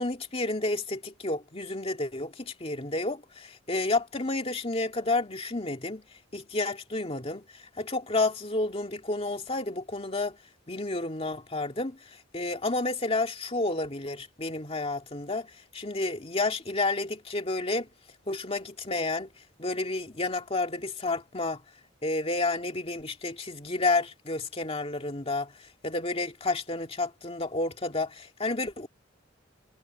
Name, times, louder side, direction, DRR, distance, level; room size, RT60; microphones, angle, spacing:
voice 1, 0.0-6.0 6.3-7.4 7.8-10.4 10.7-17.9 18.3-19.3 19.6-21.6 22.0-25.5 25.8-28.9, left 2 dB, 30° left, 2.2 m, -30 dB
head